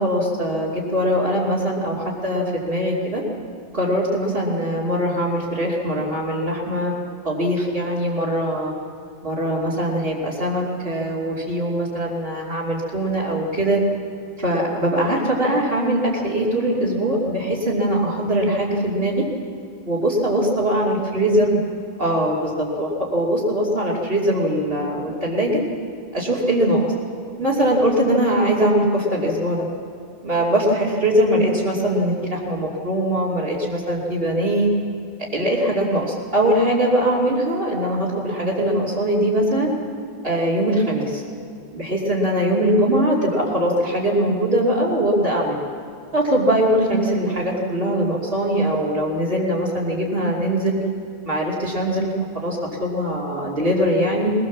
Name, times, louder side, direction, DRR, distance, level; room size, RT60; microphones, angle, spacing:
voice 1, 0.0-3.2 3.7-6.9 7.2-8.7 9.2-13.8 14.4-19.3 19.9-21.6 22.0-25.6 26.1-26.8 27.4-29.7 30.2-34.7 35.3-39.7 40.2-41.2 41.7-45.6 46.1-50.8 51.2-54.3, right 1 dB, 65° right, -6 dB, 3.1 m, -21 dB
21.5 x 20.0 x 7.3 m, 2.5 s
omnidirectional pair, 1.0 m